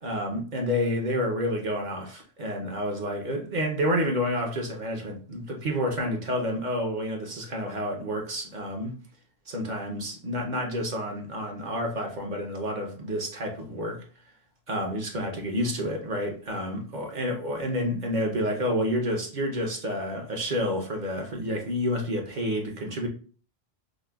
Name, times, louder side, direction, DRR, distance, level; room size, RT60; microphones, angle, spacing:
voice 1, 0.0-9.0 9.5-14.0 14.7-23.1, equal, 50° right, 0.8 m, -29 dB
4.9 x 2.2 x 2.2 m
omnidirectional pair, 1.1 m